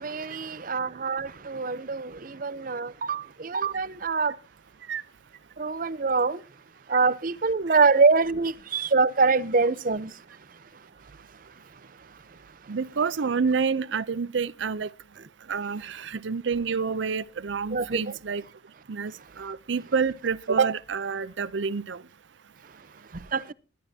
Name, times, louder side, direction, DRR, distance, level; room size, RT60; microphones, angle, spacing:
voice 1, 0.0-2.1 2.4-4.3 5.6-6.4 6.9-10.1 17.7-18.0 23.3-23.5, right 4 dB, 50° right, 0.7 m, -24 dB
voice 2, 12.7-14.9 15.5-18.4 18.9-22.0, right 5 dB, 80° right, 0.6 m, -28 dB
21.0 x 11.0 x 2.8 m
head